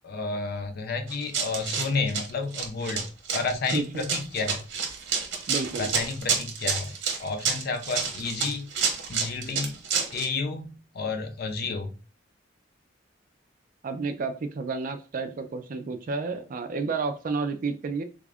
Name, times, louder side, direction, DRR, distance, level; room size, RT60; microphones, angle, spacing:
voice 1, 0.0-3.1 3.3-4.6 5.7-6.9 7.2-8.7 9.1-9.8 10.1-11.9, left 4 dB, 55° left, 6 dB, 0.5 m, -31 dB
Run, 1.1-10.3, right 6 dB, 65° right, 0.8 m, -29 dB
voice 2, 3.7-4.1 5.5-5.9 13.8-18.0, right 4 dB, 45° right, 8 dB, 0.4 m, -31 dB
3.5 x 2.4 x 3.3 m, 0.35 s
head